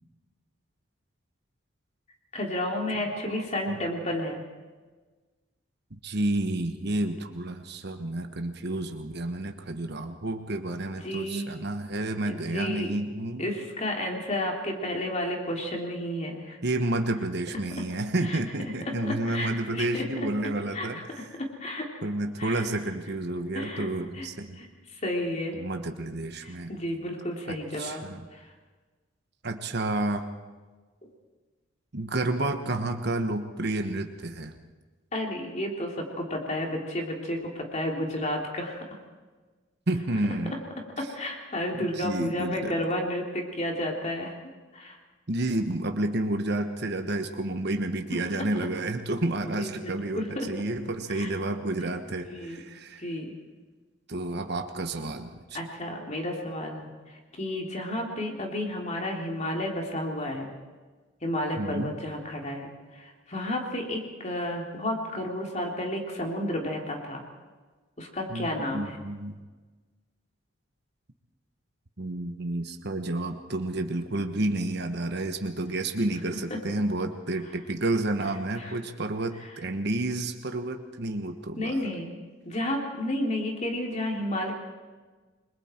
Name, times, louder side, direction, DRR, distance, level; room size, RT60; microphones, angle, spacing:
voice 1, 2.3-4.4 11.0-11.5 12.3-12.9 13.4-16.6 17.8-17.9 18.2-18.4 18.8-20.3 20.7-20.9 21.2-21.9 22.4-22.7 23.5-23.9 24.1-24.3 24.6-25.6 26.4-28.0 28.3-28.5 35.1-39.0 41.0-44.3 44.7-45.0 48.1-48.2 49.4-50.5 51.1-51.3 51.8-51.9 52.2-52.6 53.0-53.3 55.5-60.5 61.2-67.2 68.0-69.0 76.5-76.6 78.6-78.7 79.4-79.5 81.6-82.1 82.4-84.5, left 1 dB, 35° left, 0 dB, 3.2 m, -32 dB
voice 2, 5.9-13.4 16.6-21.0 22.0-24.6 25.6-26.7 27.5-28.2 29.4-30.2 31.9-34.6 39.9-40.6 41.8-42.8 45.3-53.0 54.1-55.6 61.6-61.9 68.3-69.4 72.0-81.8, right 2 dB, 55° right, 6 dB, 1.2 m, -30 dB
29.0 x 22.0 x 4.5 m, 1.3 s
head